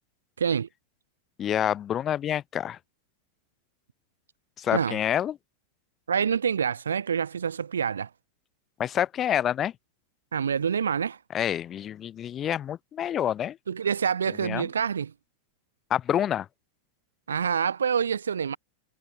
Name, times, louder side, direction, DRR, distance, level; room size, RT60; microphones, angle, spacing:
voice 1, 0.4-0.7 4.7-5.0 6.1-8.1 10.3-11.2 13.7-15.1 17.3-18.6, right 7 dB, 70° right, 1.8 m, -26 dB
voice 2, 1.4-2.8 4.6-5.4 8.8-9.7 11.3-13.6 14.4-14.7 15.9-16.5, left 10 dB, 25° left, 2.1 m, -27 dB
figure-of-eight pair, 90°, 0 cm